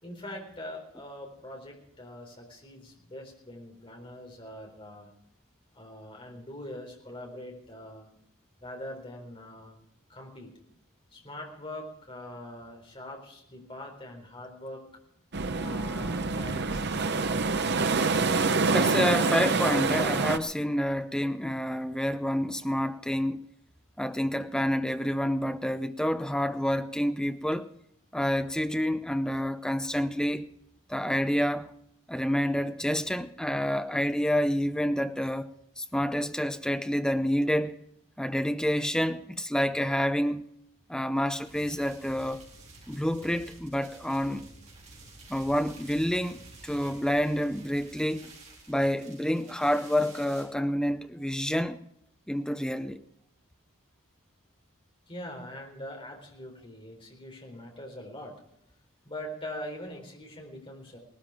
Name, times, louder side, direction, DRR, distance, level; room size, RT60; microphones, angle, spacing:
voice 1, 0.0-5.1 5.7-8.1 8.6-9.8 10.1-10.5 11.1-14.8 15.5-17.4 55.1-58.4 59.0-61.0, left 1 dB, 25° left, 4.0 m, -43 dB
sound 1, 15.3-20.4, right 4 dB, 50° right, 0.8 m, -26 dB
voice 2, 18.7-23.4 24.0-27.7 28.1-30.5 30.9-31.7 32.1-37.8 38.2-40.4 40.9-42.4 42.9-44.4 45.3-48.3 48.7-51.8 52.3-53.0, equal, 5° left, 0.7 m, -28 dB
sound 2, 41.4-50.5, right 2 dB, 30° right, 4.3 m, -51 dB
18.5 x 13.0 x 5.0 m
head